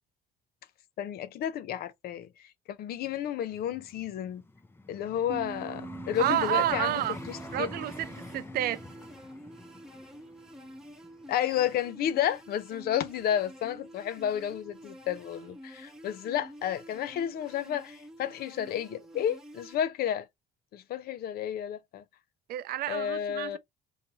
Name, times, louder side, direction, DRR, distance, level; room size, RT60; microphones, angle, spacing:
voice 1, 1.0-2.3 2.7-4.4 4.9-7.7 11.3-20.3 20.7-22.0 22.9-23.6, left 10 dB, 65° left, 0.6 m, -31 dB
Vehicle, 3.5-12.6 13.2-13.4, left 2 dB, 15° left, 0.5 m, -47 dB
sound 1, 5.3-10.6, right 5 dB, 35° right, 0.9 m, -46 dB
sound 2, 6.1-19.8, equal, 5° right, 1.1 m, -48 dB
voice 2, 6.2-7.2 7.5-8.1 8.3-8.8 22.5-23.6, right 13 dB, 65° right, 0.4 m, -29 dB
3.9 x 2.8 x 2.8 m
cardioid pair, 110°, 17 cm